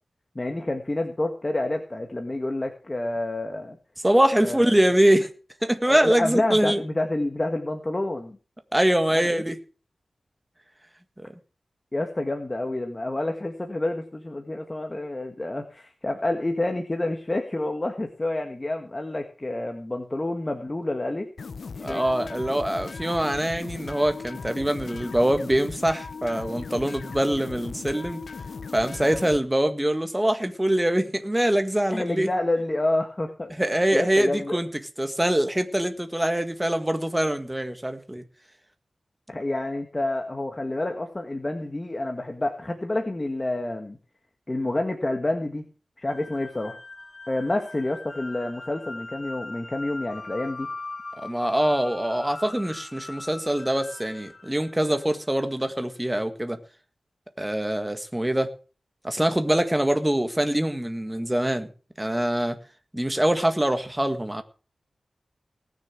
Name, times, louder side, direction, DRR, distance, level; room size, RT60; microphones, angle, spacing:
voice 1, 0.3-3.8 4.4-4.6 5.9-8.4 9.1-9.4 11.9-21.3 21.7-22.0 31.9-33.5 33.9-34.6 39.3-44.0 44.5-45.7 46.0-46.8 47.3-50.7, left 2 dB, 30° left, 5 dB, 1.5 m, -28 dB
voice 2, 4.0-5.3 5.6-6.8 8.7-9.6 21.8-28.2 28.7-32.3 33.6-34.7 35.0-38.2 51.2-56.6 57.4-58.5 59.0-61.7 62.0-62.6 62.9-64.4, right 1 dB, 10° right, 7 dB, 1.7 m, -24 dB
sound 1, 21.4-29.4, left 5 dB, 80° left, 0.5 m, -37 dB
sound 2, 46.1-55.3, left 2 dB, 45° left, 5.1 m, -40 dB
19.0 x 6.8 x 6.0 m, 0.37 s
wide cardioid pair, 75°, 0 cm